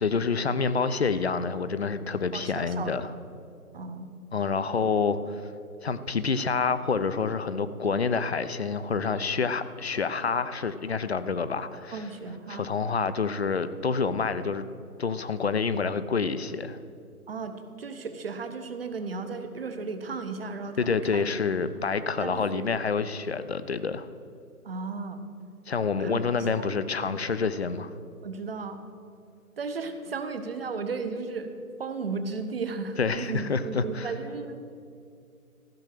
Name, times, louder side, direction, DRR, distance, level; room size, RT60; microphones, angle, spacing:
voice 1, 0.0-3.1 4.3-5.5 5.8-12.0 12.5-14.7 15.0-16.8 20.8-24.1 25.7-27.9 33.0-34.1, left 5 dB, 45° left, 13 dB, 0.5 m, -28 dB
voice 2, 2.3-2.9 3.7-4.1 11.9-12.7 17.3-21.2 22.1-22.7 24.6-25.2 26.0-26.2 26.7-26.8 28.2-28.8 29.6-34.6, right 4 dB, 40° right, 8 dB, 0.9 m, -35 dB
14.5 x 6.4 x 6.5 m, 2.4 s
figure-of-eight pair, 155°, 45 cm